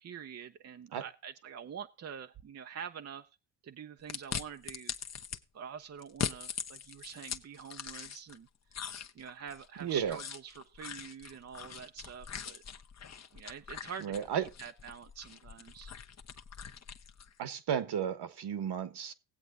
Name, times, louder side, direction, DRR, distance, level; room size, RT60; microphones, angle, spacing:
voice 1, 0.0-3.3 3.6-4.9 5.5-8.5 9.1-12.6 13.3-15.9, right 7 dB, 30° right, 0.7 m, -46 dB
sound 1, 4.1-5.4 6.0-8.4 8.7-17.3, left 7 dB, 35° left, 0.9 m, -42 dB
voice 2, 9.8-10.2 14.0-14.4 17.4-19.1, right 8 dB, 55° right, 1.4 m, -33 dB
19.0 x 7.9 x 2.5 m
supercardioid pair, 65°, 48 cm